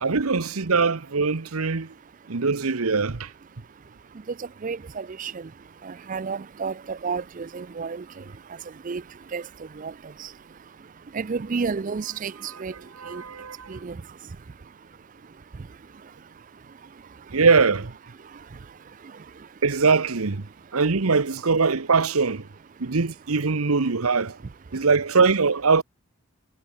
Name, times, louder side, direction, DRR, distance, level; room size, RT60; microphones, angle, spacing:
voice 1, 0.0-1.9 2.3-3.3 12.5-12.6 13.0-13.7 17.3-17.9 19.6-22.4 22.8-24.4 24.7-25.8, right 4 dB, 90° right, 1.0 m, -22 dB
voice 2, 4.6-5.3 5.9-8.0 8.9-9.0 9.3-9.4 9.8-9.9 11.1-12.3 12.6-12.7 13.1-13.2 13.7-13.9, right 5 dB, 40° right, 0.4 m, -30 dB
head